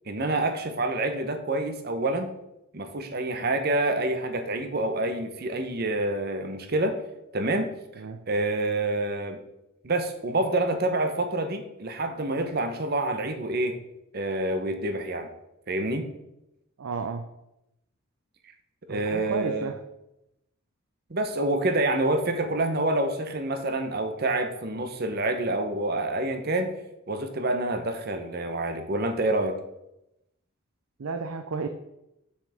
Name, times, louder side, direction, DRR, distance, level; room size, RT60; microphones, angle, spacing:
voice 1, 0.1-2.3 2.7-7.0 7.3-7.7 8.3-9.4 9.8-13.8 14.1-15.3 15.7-16.1 18.9-19.7 21.1-26.7 27.1-29.6, right 2 dB, 50° right, 7 dB, 0.8 m, -27 dB
voice 2, 16.8-17.3 18.9-19.8 31.0-31.7, right 4 dB, 80° right, 6 dB, 0.5 m, -32 dB
7.4 x 6.3 x 3.5 m, 0.88 s
head